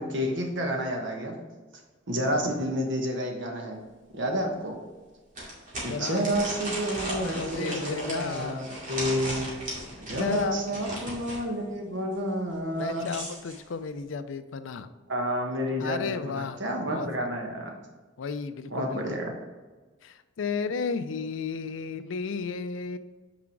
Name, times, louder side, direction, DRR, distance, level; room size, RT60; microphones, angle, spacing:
voice 1, 0.0-1.3 2.1-3.8 4.1-4.8 5.8-9.6 10.0-13.1 15.1-17.7 18.7-19.3, equal, 65° right, 2 dB, 1.2 m, -30 dB
sound 1, 3.9-4.0 4.4-4.5 5.3-11.4 12.7-13.6, right 1 dB, 45° right, 2.3 m, -36 dB
voice 2, 5.9-6.2 7.0-9.1 9.4-9.5 10.1-11.0 12.8-14.9 15.8-16.6 16.9-17.1 18.2-19.2 20.0-23.0, left 5 dB, 75° left, 12 dB, 0.4 m, -33 dB
6.1 x 4.7 x 4.6 m, 1.3 s
head